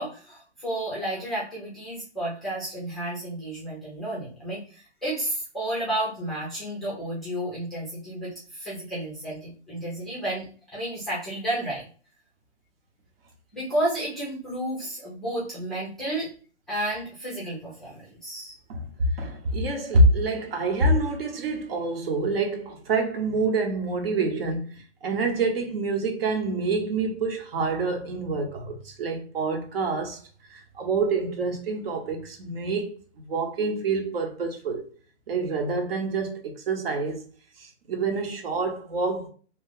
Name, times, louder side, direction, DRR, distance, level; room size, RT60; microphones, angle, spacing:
voice 1, 0.0-11.9 13.5-16.3 16.7-18.5, right 1 dB, ahead, 0.5 m, -32 dB
voice 2, 18.7-30.2 30.5-33.0 33.2-34.8 35.3-37.3 37.6-39.3, right 2 dB, 55° right, 1.0 m, -26 dB
2.9 x 2.3 x 3.7 m
hypercardioid pair, 155°, 35 cm